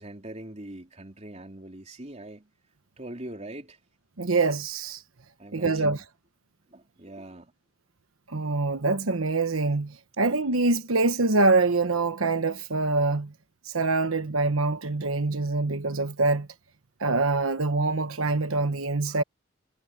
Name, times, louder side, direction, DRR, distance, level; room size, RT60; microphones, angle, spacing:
voice 1, 0.0-2.5 3.0-3.8 5.4-6.0 6.7-7.5, right 1 dB, 35° right, 3.5 m, -42 dB
voice 2, 4.2-5.0 5.5-6.0 8.3-13.3 13.6-16.5 17.0-19.2, right 3 dB, 85° right, 1.2 m, -25 dB
head